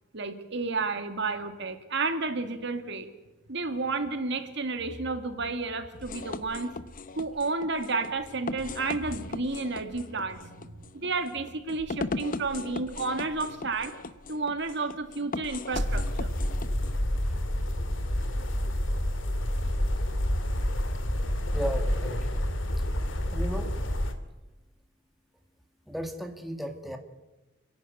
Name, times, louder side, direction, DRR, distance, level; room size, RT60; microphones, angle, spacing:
voice 1, 0.1-3.1 3.5-6.7 7.2-13.9 14.3-16.3, right 3 dB, 65° right, 8 dB, 2.2 m, -31 dB
sound 1, 5.9-17.0, left 3 dB, 45° left, 0.9 m, -38 dB
sound 2, 15.7-24.1, left 1 dB, 75° left, 2.2 m, -28 dB
voice 2, 21.5-22.4 23.3-23.8 25.9-27.0, equal, ahead, 4 dB, 2.1 m, -35 dB
28.5 x 11.0 x 9.3 m, 1.1 s
head